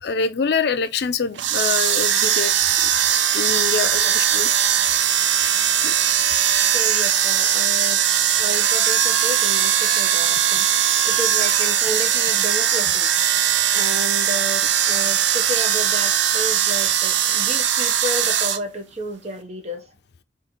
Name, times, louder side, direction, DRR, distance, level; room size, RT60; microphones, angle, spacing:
voice 1, 0.0-2.5 2.8-2.9 3.3-4.5 5.8-5.9, left 5 dB, 65° left, 0.4 m, -25 dB
sound 1, 1.3-18.6, right 9 dB, 80° right, 0.5 m, -20 dB
voice 2, 3.8-4.4 6.7-8.0 8.4-10.7 11.0-13.1 13.7-19.9, equal, 35° right, 0.8 m, -32 dB
3.8 x 2.5 x 4.3 m
head